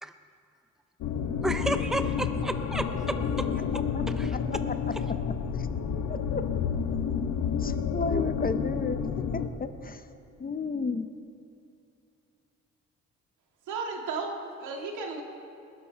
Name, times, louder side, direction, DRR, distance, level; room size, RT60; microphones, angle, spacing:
sound 1, 1.0-9.5, left 7 dB, 85° left, 1.1 m, -30 dB
voice 1, 1.4-3.4 3.7-4.4, right 1 dB, ahead, 7 dB, 0.8 m, -32 dB
voice 2, 6.1-6.5 7.6-9.0 9.3-10.0 10.4-11.1, left 4 dB, 30° left, 10 dB, 0.7 m, -32 dB
voice 3, 13.7-15.2, right 4 dB, 80° right, 1 dB, 2.2 m, -34 dB
20.0 x 10.5 x 4.6 m, 2.6 s
cardioid pair, 90°, 30 cm